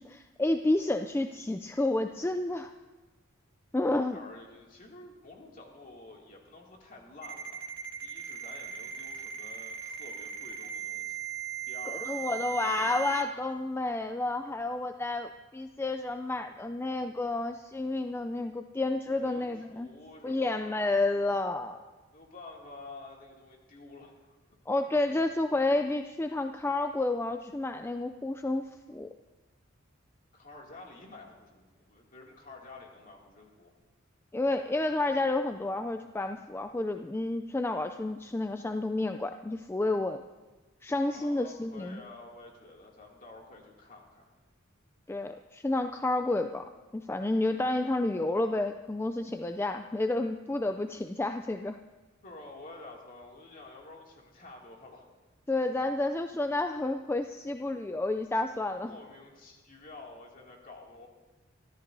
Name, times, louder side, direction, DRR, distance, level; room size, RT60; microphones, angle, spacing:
voice 1, 0.0-2.7 3.7-4.2 11.9-19.9 20.2-21.8 24.7-29.1 34.3-40.2 40.8-42.0 45.1-46.6 46.9-51.8 55.5-58.9, left 2 dB, 10° left, 7 dB, 0.3 m, -30 dB
voice 2, 4.0-7.7 8.0-11.2 11.7-12.5 19.1-21.0 21.6-24.1 24.7-25.2 30.3-33.7 41.1-44.3 52.2-55.1 58.7-61.1, left 2 dB, 45° left, -1 dB, 2.5 m, -50 dB
Ringtone, 7.2-13.2, right 9 dB, 50° right, 1.7 m, -38 dB
24.5 x 13.5 x 2.7 m, 1.2 s
head